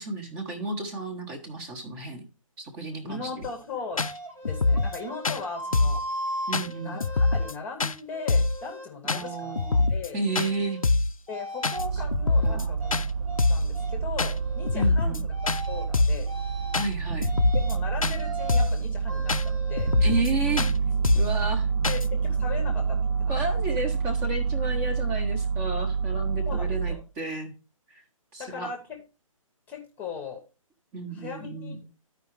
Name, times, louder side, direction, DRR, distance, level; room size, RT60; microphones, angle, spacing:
voice 1, 0.0-2.2 2.6-3.3 6.5-7.0 9.0-10.8 12.4-12.7 14.7-15.2 16.7-17.3 20.0-20.7 21.1-21.7 23.3-27.5 27.9-28.0 28.3-28.7 30.9-31.8, right 3 dB, 20° right, 4 dB, 1.2 m, -32 dB
voice 2, 3.0-4.1 4.5-6.0 6.8-9.5 9.9-10.2 11.3-12.9 13.5-15.3 15.7-16.3 17.5-19.9 21.8-23.4 26.5-27.0 28.4-29.0 29.7-30.4 31.1-31.9, left 4 dB, 10° left, 3 dB, 1.1 m, -38 dB
sound 1, 3.4-3.5 4.0-4.1 4.4-5.0 5.2-5.4 5.7-6.0 6.5-6.7 7.0-7.5 7.8-7.9 8.3-8.6 9.1-9.2 9.6-10.1 10.4-10.5 10.8-11.1 11.6-11.8 12.1-12.6 12.9-13.1 13.4-13.7 14.2-14.3 14.7-15.2 15.5-15.6 15.9-16.2 16.7-16.9 17.2-17.7 18.0-18.2 18.5-18.8 19.3-19.4 19.8-20.3 20.6-20.7 21.0-21.4 21.8-22.1, left 3 dB, 75° left, 0.6 m, -24 dB
sound 2, 4.0-7.6 8.1-8.9 9.2-9.9 10.3-10.9 11.3-11.8 12.3-13.5 13.7-14.0 14.3-14.9 15.3-15.9 16.3-16.8 17.2-17.8 18.2-18.7 19.1-20.7, right 1 dB, 85° right, 2.6 m, -38 dB
sound 3, 11.8-27.0, right 5 dB, 40° right, 0.6 m, -28 dB
13.5 x 5.0 x 3.2 m, 0.30 s
figure-of-eight pair, 135°, 18 cm